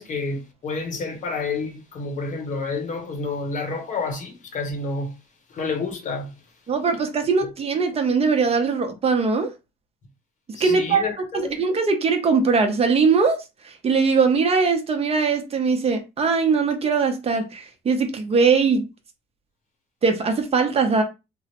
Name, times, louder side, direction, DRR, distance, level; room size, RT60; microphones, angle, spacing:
voice 1, 0.0-5.1 5.5-6.3 10.5-11.6, left 3 dB, 50° left, 0.9 m, -29 dB
voice 2, 6.7-9.5 10.6-11.1 11.3-18.8 20.0-21.0, right 5 dB, 35° right, 0.7 m, -21 dB
3.0 x 2.0 x 2.9 m
cardioid pair, 110°, 17 cm